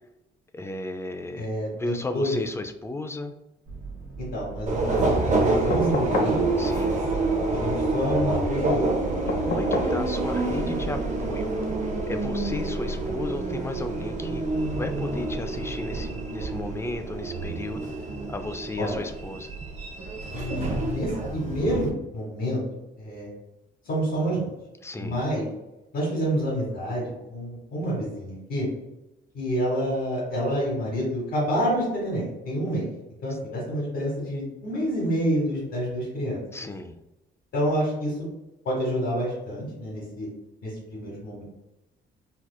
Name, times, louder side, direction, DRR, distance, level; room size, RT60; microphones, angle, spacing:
voice 1, 0.5-3.3 6.6-7.0 9.4-11.5 12.1-14.5 14.7-17.9 18.3-19.5 24.8-25.2 36.5-37.0, left 2 dB, 15° left, 7 dB, 0.3 m, -34 dB
voice 2, 1.3-2.4 4.2-6.4 7.1-9.0 18.8-19.0 20.3-22.6 23.0-23.3 23.8-24.5 25.0-25.4 25.9-28.7 29.3-32.9 33.2-36.7 37.5-38.3 38.6-40.3 40.6-41.4, equal, 70° left, -5 dB, 1.4 m, -28 dB
sound 1, 3.7-11.4, right 4 dB, 80° right, 1.0 m, -40 dB
Subway metro underground, 4.7-21.9, right 2 dB, 40° right, 0.7 m, -27 dB
sound 2, 5.7-6.4 9.3-10.0 11.6-11.7, left 2 dB, 50° left, 0.6 m, -28 dB
4.3 x 2.3 x 2.3 m, 0.97 s
cardioid pair, 90°, 20 cm